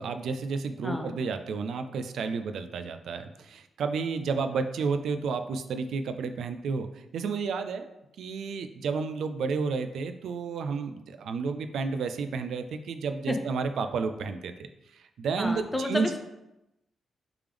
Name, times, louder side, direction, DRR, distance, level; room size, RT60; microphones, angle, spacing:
voice 1, 0.0-7.9 8.2-14.5 14.9-16.2, right 5 dB, 75° right, 8 dB, 0.3 m, -31 dB
voice 2, 0.8-1.2 13.3-13.4 15.4-16.2, left 1 dB, 10° left, 5 dB, 0.5 m, -31 dB
3.4 x 3.3 x 3.3 m, 0.92 s
cardioid pair, 75°, 0 cm